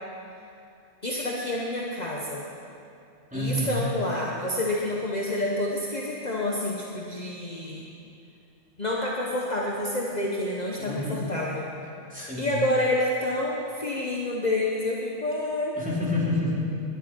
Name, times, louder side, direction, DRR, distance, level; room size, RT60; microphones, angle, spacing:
voice 1, 1.0-2.4 3.3-7.9 8.8-11.7 12.2-15.8, left 1 dB, 40° left, -3 dB, 1.3 m, -28 dB
voice 2, 3.3-3.8 10.8-11.3 12.1-12.6 15.8-16.6, left 2 dB, 5° right, -7 dB, 3.4 m, -28 dB
20.5 x 11.0 x 4.5 m, 2.6 s
omnidirectional pair, 1.2 m